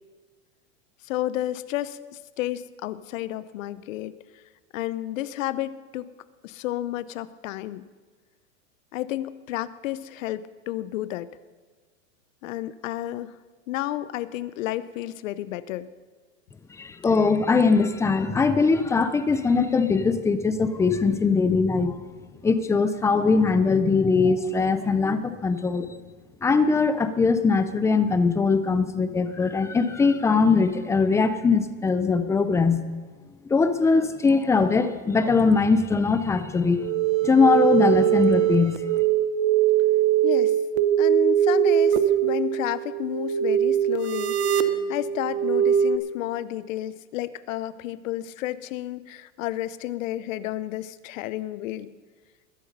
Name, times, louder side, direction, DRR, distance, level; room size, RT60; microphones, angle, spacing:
voice 1, 1.0-4.2 4.7-6.1 6.4-7.8 8.9-11.3 12.4-13.3 13.7-15.9 40.2-40.6 41.0-51.9, left 14 dB, 75° left, 17 dB, 0.8 m, -31 dB
voice 2, 16.8-22.0 22.4-25.9 26.4-32.8 33.5-36.8 37.2-38.8, left 4 dB, 10° left, 11 dB, 0.4 m, -21 dB
sound 1, 36.8-46.0, right 11 dB, 55° right, 1.0 m, -22 dB
21.5 x 7.9 x 5.3 m, 1.4 s
supercardioid pair, 135°, 39 cm